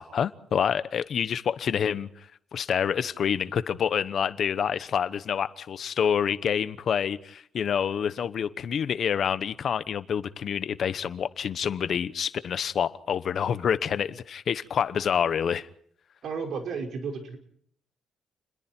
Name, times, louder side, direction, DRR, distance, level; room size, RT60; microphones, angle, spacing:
voice 1, 0.0-2.1 2.5-15.7, left 8 dB, 45° left, 1.0 m, -27 dB
voice 2, 16.2-17.4, right 5 dB, 55° right, 5.3 m, -33 dB
30.0 x 21.0 x 4.5 m
cardioid pair, 170°, 0 cm